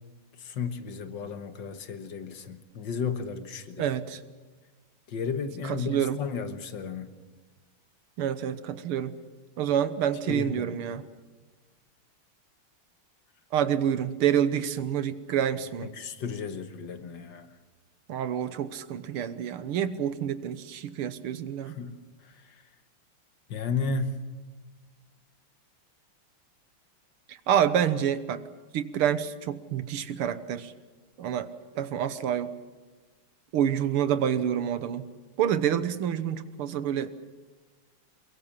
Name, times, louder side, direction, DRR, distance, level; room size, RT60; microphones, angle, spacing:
voice 1, 0.4-3.9 5.1-7.1 10.3-10.8 15.8-17.6 21.7-22.0 22.2-22.6 23.5-24.3, left 5 dB, 60° left, 9 dB, 1.8 m, -34 dB
voice 2, 3.8-4.2 5.6-6.2 8.2-9.2 9.6-11.1 13.5-15.9 18.1-21.8 27.3-28.4 28.7-30.7 31.2-31.5 31.8-32.5 33.5-35.1 35.4-37.1, right 9 dB, 85° right, 13 dB, 2.0 m, -28 dB
23.0 x 22.5 x 7.3 m, 1.3 s
omnidirectional pair, 2.4 m